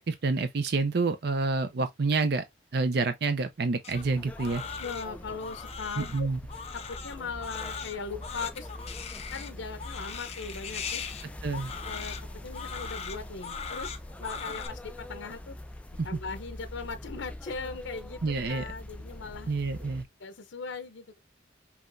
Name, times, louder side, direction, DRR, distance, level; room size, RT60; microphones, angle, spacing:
voice 1, 0.0-2.4 2.7-4.6 6.0-6.4 11.4-11.7 16.0-16.2 18.2-18.6 19.5-20.1, right 3 dB, 55° right, 0.5 m, -28 dB
Crying sobbing, 3.8-14.7, left 6 dB, 35° left, 0.7 m, -40 dB
sound 1, 3.9-20.0, left 1 dB, 5° left, 0.3 m, -43 dB
voice 2, 4.8-6.3 6.7-8.7 9.3-11.1 11.8-13.9 14.2-15.6 16.0-19.5 20.2-21.2, left 4 dB, 80° left, 0.6 m, -39 dB
5.6 x 2.9 x 2.5 m
head